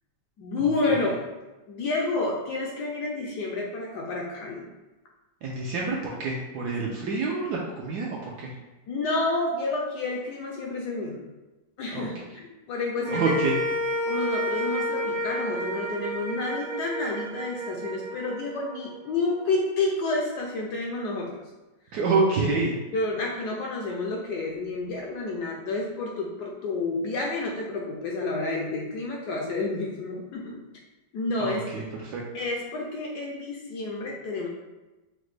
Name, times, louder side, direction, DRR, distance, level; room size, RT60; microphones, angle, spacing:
voice 1, 0.4-1.1 1.7-4.7 8.9-11.2 11.8-13.4 14.1-21.5 22.9-30.6 31.1-31.6 32.3-34.5, left 3 dB, 75° left, -1 dB, 1.0 m, -29 dB
voice 2, 5.4-8.5 11.9-12.1 13.1-13.5 21.9-22.8 31.4-32.2, right 3 dB, 75° right, -3 dB, 0.9 m, -27 dB
sound 1, 13.0-19.5, equal, 90° right, 1.6 m, -31 dB
5.0 x 2.1 x 3.2 m, 1.1 s
omnidirectional pair, 2.1 m